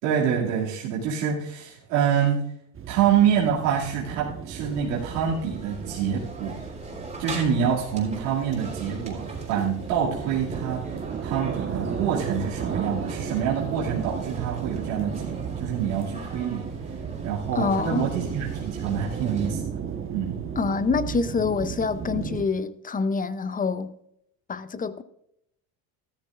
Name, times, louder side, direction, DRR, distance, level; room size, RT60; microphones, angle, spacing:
voice 1, 0.0-2.4 2.9-6.5 7.2-10.8 11.2-16.7 17.2-20.4, right 8 dB, 90° right, 2.5 m, -26 dB
sound 1, 2.7-22.4, right 7 dB, 35° right, 1.3 m, -35 dB
sound 2, 4.6-19.5, right 2 dB, 15° right, 3.8 m, -40 dB
voice 2, 17.5-18.1 20.6-24.0 24.5-25.0, left 4 dB, 20° left, 0.6 m, -26 dB
13.5 x 13.0 x 2.5 m
supercardioid pair, 90°, 38 cm